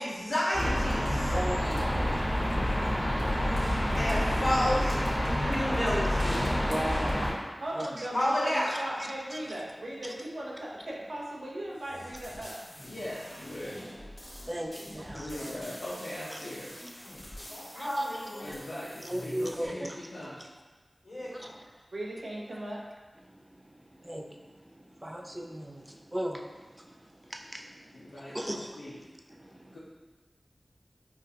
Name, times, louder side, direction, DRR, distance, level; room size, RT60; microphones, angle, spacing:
voice 1, 0.0-1.3 4.0-5.0 5.4-6.4 8.1-8.7 17.7-18.4 21.0-21.5, equal, 65° left, -9 dB, 1.3 m, -30 dB
sound 1, 0.5-7.3, equal, 5° right, 1.2 m, -28 dB
voice 2, 1.3-2.2 3.5-3.8 4.9-5.0 6.7-8.1 8.7-9.4 10.0-10.1 14.5-15.3 16.3-16.4 17.4-17.5 17.8-18.1 18.5-18.6 19.0-20.0 21.3-21.6 23.2-28.8 29.4-29.8, right 1 dB, 20° right, 2 dB, 0.4 m, -39 dB
voice 3, 3.1-3.8 12.8-14.1 15.1-16.7 17.5-20.5 27.9-29.0 29.7-29.8, left 1 dB, 85° left, -9 dB, 0.6 m, -41 dB
voice 4, 3.8-5.0 7.6-12.6 14.8-15.5 21.9-22.8, right 1 dB, 85° right, -4 dB, 0.7 m, -39 dB
sound 2, 11.7-19.7, left 1 dB, 30° left, 0.8 m, -46 dB
5.1 x 2.4 x 2.7 m, 1.3 s
wide cardioid pair, 55°, 0 cm